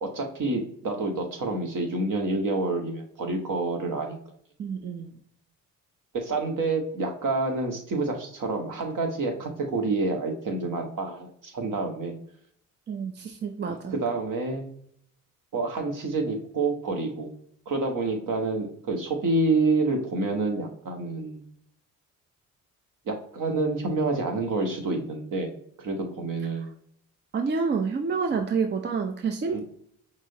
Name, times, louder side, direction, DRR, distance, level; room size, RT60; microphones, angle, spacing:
voice 1, 0.0-4.1 6.1-12.2 13.9-14.7 15.5-17.3 17.7-21.4 23.1-26.7 28.3-28.4 29.5-29.6, right 3 dB, 55° right, 3 dB, 1.2 m, -28 dB
voice 2, 4.6-5.1 12.9-13.9 27.3-29.6, right 5 dB, 30° right, 5 dB, 0.5 m, -28 dB
6.0 x 2.1 x 2.7 m, 0.65 s
hypercardioid pair, 45°, 39 cm